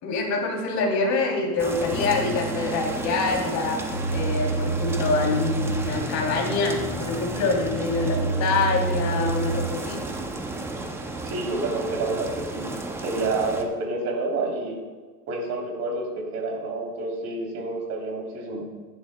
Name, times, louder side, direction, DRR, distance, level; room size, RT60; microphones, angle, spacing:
voice 1, 0.0-3.8 4.1-10.0, left 4 dB, 35° left, 0 dB, 3.0 m, -25 dB
sound 1, 1.6-13.6, right 2 dB, 5° right, 0.4 m, -33 dB
sound 2, 1.9-10.0, right 4 dB, 70° left, 3.0 m, -30 dB
voice 2, 11.2-12.6 13.0-14.8 15.3-18.7, right 2 dB, 35° right, -1 dB, 3.1 m, -29 dB
15.5 x 11.0 x 2.2 m, 1.4 s
supercardioid pair, 130°, 48 cm